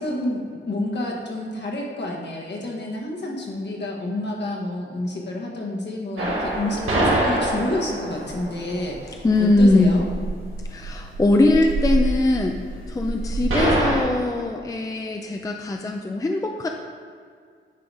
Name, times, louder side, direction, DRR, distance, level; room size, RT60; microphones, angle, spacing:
voice 1, 0.0-10.1, left 1 dB, 55° left, -1 dB, 1.3 m, -29 dB
sound 1, 6.2-14.0, right 2 dB, 80° right, 1.9 m, -25 dB
voice 2, 9.2-10.0 10.7-12.6 12.9-16.7, left 2 dB, 15° left, 3 dB, 0.4 m, -21 dB
9.6 x 3.9 x 4.7 m, 2.1 s
wide cardioid pair, 140°, 21 cm